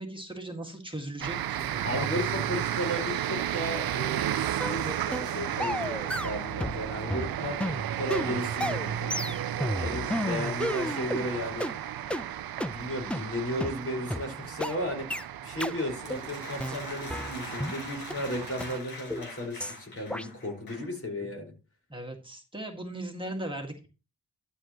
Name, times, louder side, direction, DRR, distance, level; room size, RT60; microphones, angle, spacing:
voice 1, 0.0-2.3 9.8-10.1 21.9-23.9, right 1 dB, 15° right, 2 dB, 1.9 m, -38 dB
sound 1, 1.2-18.8, right 11 dB, 75° right, 0.5 m, -33 dB
voice 2, 1.8-7.6 8.0-9.4 9.8-11.8 12.7-21.5, left 1 dB, 40° left, 2 dB, 5.0 m, -35 dB
sound 2, 4.6-4.8 5.1-5.3 5.6-6.8 7.1-11.2 11.6-11.7 12.1-12.2 12.6-12.7 13.1-13.2 13.6-13.7 14.1-14.2 14.6-14.7 15.1-15.3 15.6-15.8 16.1-16.3 16.6-17.8 18.1-18.2 18.6-18.7 19.1-19.3 19.6-19.8 20.1-20.3, equal, 5° left, 0.5 m, -32 dB
sound 3, 15.8-21.0, left 2 dB, 75° left, 5.5 m, -44 dB
12.5 x 7.9 x 3.0 m, 0.31 s
wide cardioid pair, 85°, 36 cm